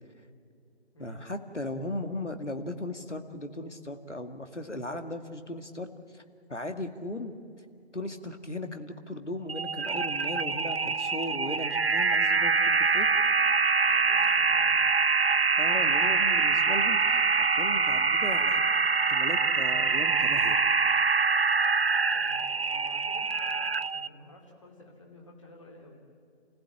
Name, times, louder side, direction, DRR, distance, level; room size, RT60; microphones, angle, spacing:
voice 1, 1.0-6.2 6.5-7.3 7.9-13.1 15.6-17.3 17.6-18.6 19.1-20.6, left 1 dB, 90° left, 6 dB, 2.2 m, -37 dB
sound 1, 9.5-24.1, right 4 dB, 60° right, 0.6 m, -25 dB
voice 2, 13.8-14.8 22.1-26.0, left 1 dB, 25° left, 0 dB, 3.0 m, -51 dB
28.5 x 16.0 x 8.8 m, 2.5 s
figure-of-eight pair, 165°, 34 cm